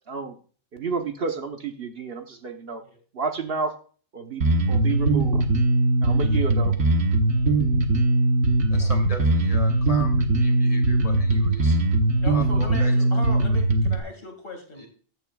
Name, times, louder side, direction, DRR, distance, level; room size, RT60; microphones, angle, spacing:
voice 1, 0.7-2.8 3.1-3.7 4.1-5.4 6.0-6.7, right 5 dB, 55° right, 6 dB, 1.2 m, -30 dB
Bass guitar, 4.4-14.0, right 2 dB, 90° right, 1.5 m, -20 dB
voice 2, 8.7-11.8 12.3-13.0 14.8-14.9, left 3 dB, 30° left, 1 dB, 2.9 m, -37 dB
voice 3, 12.2-14.9, left 2 dB, 50° left, 4 dB, 2.4 m, -38 dB
14.0 x 9.0 x 2.3 m, 0.41 s
omnidirectional pair, 1.2 m